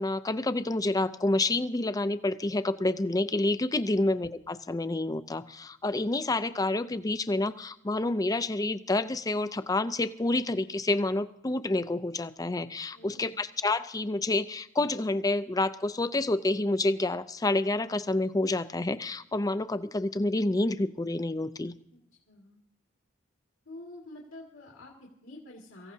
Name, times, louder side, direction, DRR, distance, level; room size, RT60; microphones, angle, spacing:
voice 1, 0.0-21.7, left 2 dB, 20° left, 12 dB, 0.5 m, -28 dB
voice 2, 12.9-13.4 21.9-22.0 22.3-22.6 23.7-25.9, left 1 dB, 90° left, -2 dB, 2.2 m, -48 dB
24.0 x 15.0 x 2.8 m, 0.73 s
head